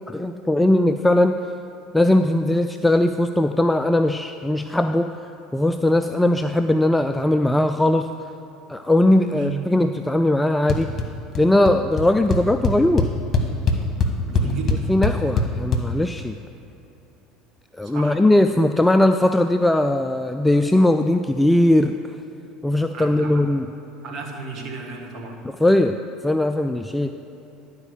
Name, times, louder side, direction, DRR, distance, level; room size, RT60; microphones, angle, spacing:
voice 1, 0.1-1.4 1.9-5.2 5.5-8.1 8.7-10.9 11.4-13.1 14.9-16.4 17.8-21.9 22.6-23.7 25.4-27.1, left 1 dB, 10° left, 8 dB, 0.3 m, -19 dB
sound 1, 10.7-11.1 11.3-11.7 12.0-12.1 12.3-15.8, left 3 dB, 40° left, 1.2 m, -21 dB
voice 2, 14.3-14.8 17.8-18.2 22.9-23.4 24.0-25.4, right 5 dB, 50° right, 1 dB, 1.5 m, -33 dB
11.5 x 4.9 x 6.7 m, 3.0 s
hypercardioid pair, 75°, 0 cm